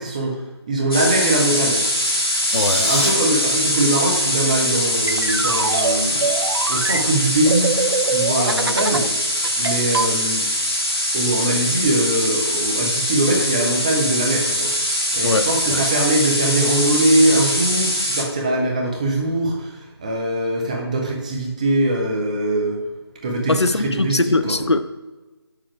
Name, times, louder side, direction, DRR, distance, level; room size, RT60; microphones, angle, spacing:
voice 1, 0.0-2.1 2.7-6.3 6.7-9.1 9.6-10.4 11.1-14.7 15.1-22.8 23.2-24.6, right 1 dB, 15° right, 0 dB, 0.9 m, -22 dB
sound 1, 0.9-18.2, equal, 60° left, 2.7 m, -22 dB
sound 2, 2.2-3.1, left 1 dB, 20° left, 1.5 m, -25 dB
voice 2, 2.5-2.9 15.2-15.8 23.5-24.8, left 2 dB, 80° left, 12 dB, 0.6 m, -21 dB
sound 3, 4.7-9.1 9.4-10.1, right 4 dB, 60° right, 0.4 m, -24 dB
7.2 x 6.8 x 4.9 m, 1.2 s
figure-of-eight pair, 160°, 14 cm